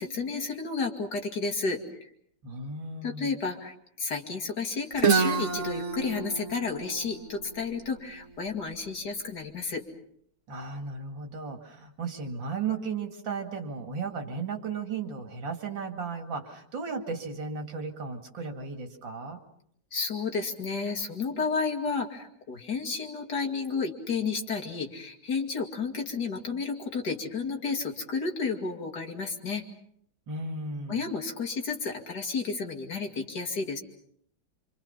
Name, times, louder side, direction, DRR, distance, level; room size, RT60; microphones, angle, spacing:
voice 1, 0.0-1.8 3.0-9.8 19.9-29.6 30.9-33.8, left 4 dB, 60° left, 3 dB, 2.9 m, -32 dB
voice 2, 2.4-3.4 10.5-19.4 30.3-31.0, right 4 dB, 85° right, 5 dB, 2.9 m, -35 dB
Guitar, 5.0-8.8, right 5 dB, 45° right, 1.5 m, -29 dB
26.5 x 26.0 x 5.6 m, 0.67 s
omnidirectional pair, 2.0 m